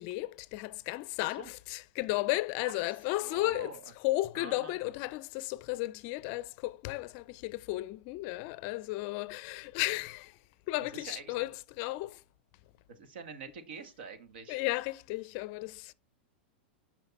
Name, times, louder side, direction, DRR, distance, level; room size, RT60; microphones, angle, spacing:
voice 1, 0.0-10.4 10.7-12.2 14.5-15.9, left 19 dB, 50° left, 0.4 m, -34 dB
voice 2, 3.2-3.8 4.3-4.8 10.9-11.5 12.9-14.6, right 5 dB, 75° right, 1.7 m, -46 dB
8.1 x 5.7 x 4.1 m
hypercardioid pair, 130°, 6 cm